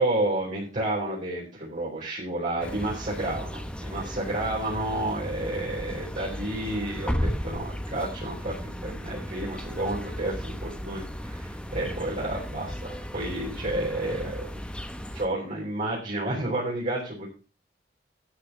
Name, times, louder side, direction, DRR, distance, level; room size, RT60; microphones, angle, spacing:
voice 1, 0.0-14.5 15.1-17.3, right 1 dB, 45° right, -6 dB, 4.5 m, -31 dB
sound 1, 2.6-15.2, equal, 5° left, 1.1 m, -35 dB
13.0 x 5.9 x 6.2 m, 0.35 s
head